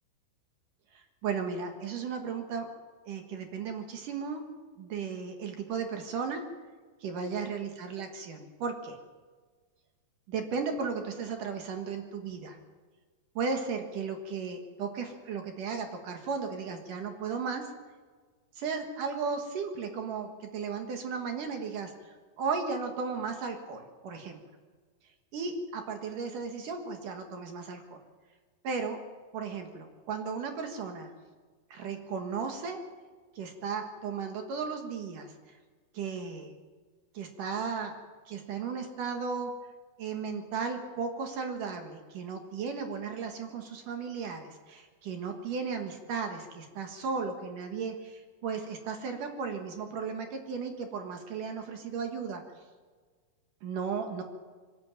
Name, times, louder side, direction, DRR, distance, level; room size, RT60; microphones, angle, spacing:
voice 1, 1.2-2.7 3.1-4.4 4.8-6.4 7.0-9.0 10.3-12.6 13.4-17.7 18.6-21.9 22.4-24.4 25.3-28.0 28.6-29.0 29.3-31.1 31.7-32.8 33.4-35.3 35.9-36.5 37.1-37.9 38.3-39.5 40.0-52.4 53.6-54.2, right 5 dB, 60° right, 5 dB, 2.7 m, -35 dB
23.5 x 13.0 x 8.9 m, 1.5 s
omnidirectional pair, 4.9 m